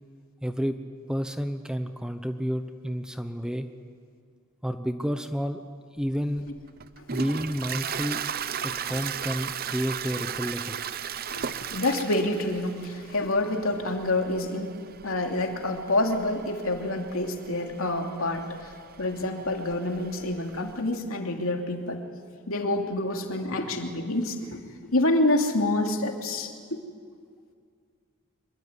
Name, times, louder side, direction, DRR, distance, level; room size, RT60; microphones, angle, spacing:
voice 1, 0.4-0.8 1.1-3.7 4.6-5.6 6.0-6.4 7.1-8.2 8.6-11.0 18.4-18.5, equal, 5° right, 8 dB, 0.9 m, -30 dB
Toilet flush, 6.1-20.8, right 7 dB, 45° right, 0.7 m, -37 dB
voice 2, 11.3-14.7 15.0-18.7 19.0-22.0 22.5-24.6 24.9-26.8, left 1 dB, 70° left, 3 dB, 2.9 m, -27 dB
25.5 x 23.0 x 9.9 m, 2.2 s
head